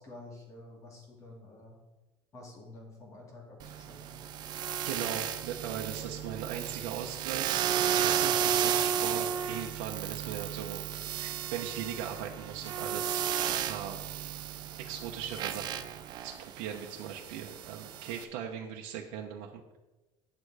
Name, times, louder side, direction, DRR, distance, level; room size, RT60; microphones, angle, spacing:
voice 1, 0.0-1.8 2.3-4.2, left 2 dB, 25° left, -1 dB, 2.6 m, -50 dB
sound 1, 3.6-18.2, right 9 dB, 40° right, 0.6 m, -33 dB
voice 2, 4.8-13.3 13.6-14.0 14.9-15.9 16.2-19.6, right 8 dB, 70° right, 0 dB, 0.9 m, -39 dB
9.4 x 6.9 x 4.9 m, 1.1 s
cardioid pair, 170°, 11 cm